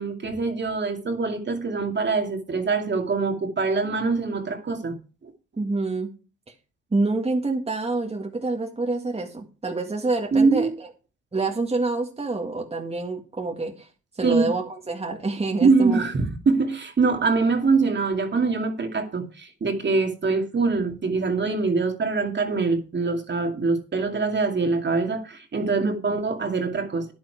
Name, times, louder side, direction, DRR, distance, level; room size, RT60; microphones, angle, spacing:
voice 1, 0.0-5.0 5.2-5.3 10.3-10.7 14.2-14.5 15.6-27.1, right 4 dB, 35° right, 2.4 m, -23 dB
voice 2, 5.6-6.1 6.9-10.9 11.3-13.9 14.1-16.1 25.8-26.1, right 3 dB, 20° right, 2.0 m, -27 dB
10.0 x 9.4 x 4.8 m
cardioid pair, 90°, 30 cm